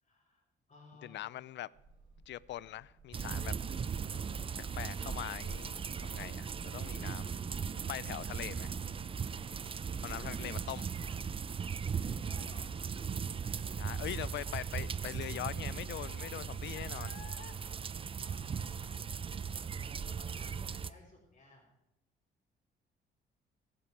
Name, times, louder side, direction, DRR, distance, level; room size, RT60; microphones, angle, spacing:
voice 1, 0.0-1.7 4.1-5.0 10.0-10.6 12.0-12.8 13.4-14.0 18.2-21.7, left 2 dB, 40° left, 4.3 m, -59 dB
voice 2, 1.0-1.7 2.3-3.5 4.8-5.8 6.0-7.4 7.8-8.7 10.0-10.9 13.8-17.2, left 13 dB, 65° left, 0.4 m, -42 dB
sound 1, 1.7-13.0, right 2 dB, 85° right, 5.6 m, -57 dB
sound 2, 3.1-20.9, right 6 dB, 25° right, 0.4 m, -38 dB
Child speech kid speaking, 7.5-19.0 19.3-19.7 20.2-20.3, left 12 dB, 90° left, 0.7 m, -61 dB
14.0 x 11.5 x 4.6 m
cardioid pair, 90°, 20 cm